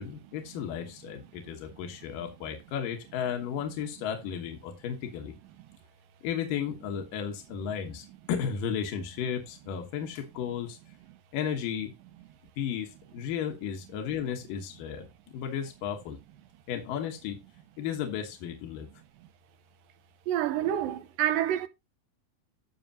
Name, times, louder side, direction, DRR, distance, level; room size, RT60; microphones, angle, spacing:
voice 1, 0.0-5.3 6.2-10.8 11.3-11.9 12.6-16.2 16.7-17.4 17.8-18.9, left 8 dB, 80° left, 3.0 m, -34 dB
voice 2, 20.3-21.7, right 11 dB, 85° right, 2.6 m, -28 dB
12.5 x 6.6 x 2.8 m
omnidirectional pair, 3.9 m